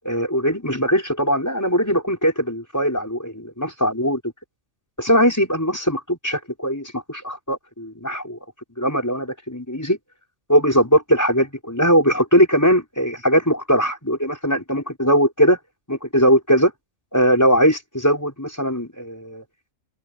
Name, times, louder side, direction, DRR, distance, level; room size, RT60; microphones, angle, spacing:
voice 1, 0.0-4.2 5.0-8.4 8.8-10.0 10.5-15.6 15.9-16.7 17.1-19.4, equal, 15° left, 5.5 m, -20 dB
open air
omnidirectional pair, 1.4 m